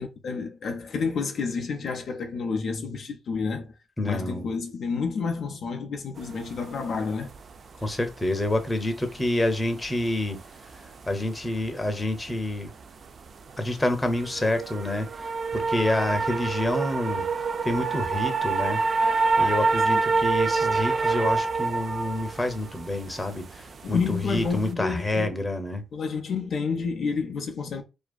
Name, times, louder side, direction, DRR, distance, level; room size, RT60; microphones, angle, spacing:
voice 1, 0.0-3.7 4.0-7.3 19.9-20.0 23.8-25.4 25.9-27.8, left 5 dB, 65° left, 0.4 m, -30 dB
voice 2, 4.0-4.5 7.8-10.4 11.1-12.7 13.6-17.2 17.6-18.8 19.4-25.8, left 1 dB, 25° left, 0.6 m, -28 dB
sound 1, 6.2-24.7, right 4 dB, 60° right, 0.3 m, -27 dB
2.5 x 2.3 x 2.2 m
hypercardioid pair, 45°, 0 cm